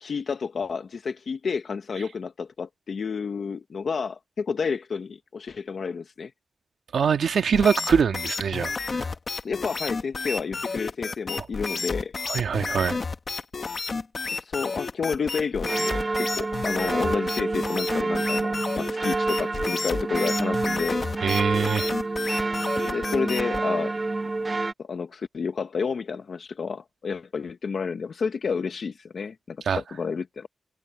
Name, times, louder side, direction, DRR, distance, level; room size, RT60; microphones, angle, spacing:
voice 1, 0.0-6.3 9.1-9.2 9.4-12.1 14.4-21.0 22.8-23.9 24.8-30.5, left 5 dB, 60° left, 0.9 m, -30 dB
voice 2, 6.9-9.1 11.4-11.5 12.2-13.0 21.2-21.9 29.6-29.8, right 6 dB, 90° right, 1.5 m, -24 dB
sound 1, 7.5-23.6, left 4 dB, 40° left, 1.4 m, -31 dB
sound 2, 15.6-24.7, right 3 dB, 25° right, 0.9 m, -28 dB
wide cardioid pair, 170°, 0 cm